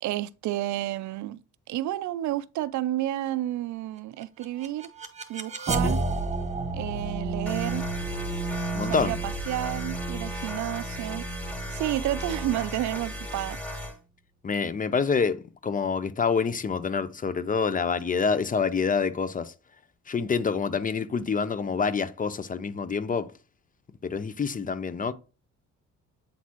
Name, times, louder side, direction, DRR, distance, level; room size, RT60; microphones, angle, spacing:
voice 1, 0.0-1.4 1.7-4.9 5.3-6.0 6.7-7.9 8.8-11.3 11.7-13.6, right 14 dB, 70° right, 0.5 m, -31 dB
sound 1, 4.2-13.2, right 3 dB, 20° right, 1.2 m, -33 dB
sound 2, 7.5-14.0, equal, 5° left, 2.2 m, -35 dB
voice 2, 8.7-9.1 14.4-19.5 20.1-23.3 24.0-25.1, left 5 dB, 25° left, 0.6 m, -27 dB
8.4 x 4.0 x 3.0 m
cardioid pair, 90°, 30 cm